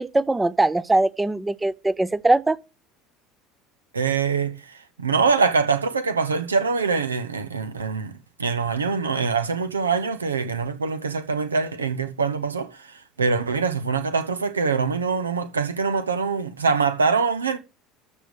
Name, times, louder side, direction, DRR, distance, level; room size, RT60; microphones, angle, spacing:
voice 1, 0.0-2.6, right 2 dB, 10° right, 0.6 m, -21 dB
voice 2, 3.9-8.1 8.4-17.6, right 5 dB, 85° right, 0.9 m, -24 dB
13.0 x 5.4 x 6.2 m
figure-of-eight pair, 70°, 0 cm